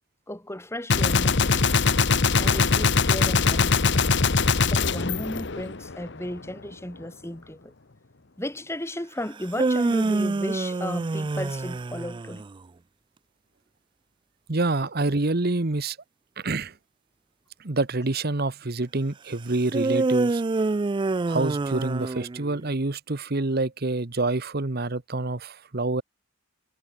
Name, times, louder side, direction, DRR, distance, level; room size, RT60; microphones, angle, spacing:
voice 1, 0.3-1.8 2.3-4.0 4.7-7.7 8.4-12.4, left 1 dB, 10° left, 2.5 m, -35 dB
Gunshot gunfire, 0.9-6.1, left 4 dB, 55° left, 1.1 m, -22 dB
sound 1, 9.3-12.6 19.7-22.7, right 3 dB, 20° right, 0.3 m, -26 dB
voice 2, 14.5-16.0 16.4-16.7 17.6-20.4 21.3-26.0, right 2 dB, 50° right, 1.1 m, -27 dB
head